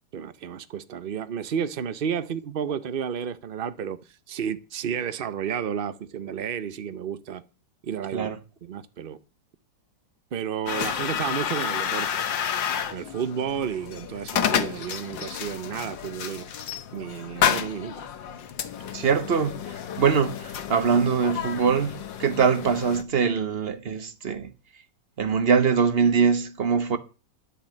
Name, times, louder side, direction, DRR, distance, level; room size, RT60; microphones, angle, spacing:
voice 1, 0.1-4.0 4.3-7.4 7.8-8.3 8.6-9.2 10.3-12.2 12.9-16.5 16.9-18.0, right 8 dB, 70° right, 0.5 m, -31 dB
sound 1, 10.7-23.0, left 9 dB, 85° left, 1.9 m, -30 dB
voice 2, 18.9-21.9 22.2-24.5 25.2-27.0, right 6 dB, 40° right, 1.1 m, -23 dB
11.0 x 6.8 x 8.7 m
omnidirectional pair, 2.0 m